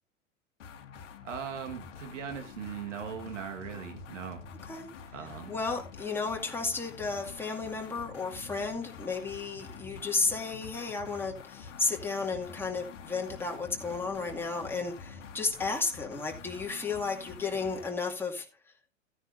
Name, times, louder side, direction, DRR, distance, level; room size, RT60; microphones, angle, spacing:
sound 1, 0.6-18.0, left 6 dB, 65° left, 1.4 m, -47 dB
voice 1, 1.2-4.4 5.1-5.5, right 7 dB, 70° right, 5 dB, 1.7 m, -39 dB
voice 2, 5.5-18.5, left 4 dB, 5° left, -1 dB, 2.3 m, -33 dB
15.0 x 9.7 x 2.6 m, 0.30 s
figure-of-eight pair, 90°, 39 cm